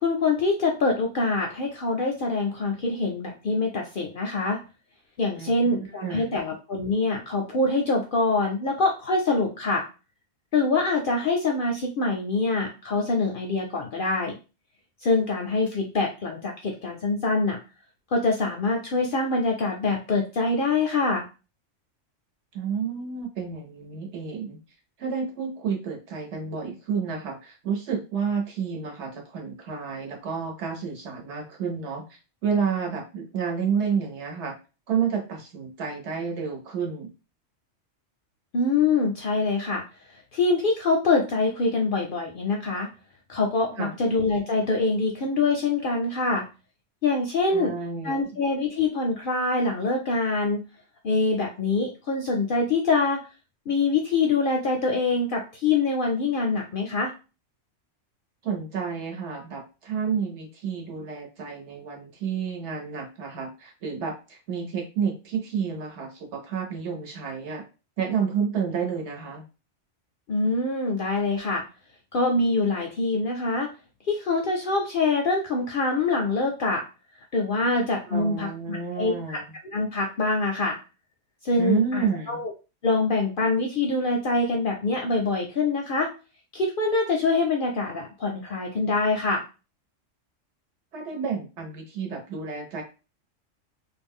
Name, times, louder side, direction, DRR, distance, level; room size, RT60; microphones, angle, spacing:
voice 1, 0.0-4.6 5.2-9.8 10.5-14.3 15.0-17.6 18.1-21.2 38.5-39.8 40.3-42.9 43.3-46.4 47.0-47.7 48.0-50.6 51.0-53.2 53.7-57.1 70.3-71.6 72.1-73.7 74.1-76.8 77.3-79.4 79.7-80.8 81.4-82.5 82.8-86.1 86.5-89.4, left 3 dB, 60° left, 2 dB, 0.6 m, -24 dB
voice 2, 5.3-6.4 22.5-24.6 25.0-34.5 34.9-37.1 43.8-44.0 47.5-48.4 58.4-67.6 68.0-69.4 78.1-79.4 81.6-82.4 90.9-92.8, right 6 dB, 65° right, 1 dB, 1.1 m, -30 dB
2.4 x 2.2 x 3.5 m, 0.31 s
omnidirectional pair, 1.3 m